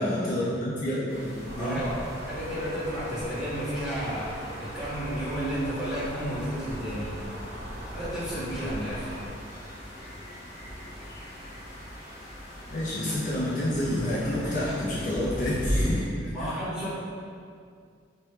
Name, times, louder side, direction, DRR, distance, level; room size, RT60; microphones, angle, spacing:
voice 1, 0.0-1.8 12.7-16.1 16.4-16.6, left 1 dB, 45° left, -7 dB, 0.4 m, -29 dB
sound 1, 1.1-16.0, equal, 65° left, 0.9 m, -38 dB
sound 2, 1.4-9.3, equal, 85° right, 0.5 m, -40 dB
voice 2, 1.6-2.0 2.3-4.4 4.7-7.1 7.9-9.1 16.3-16.9, equal, 5° right, -16 dB, 1.4 m, -32 dB
3.0 x 2.2 x 3.1 m, 2.2 s
head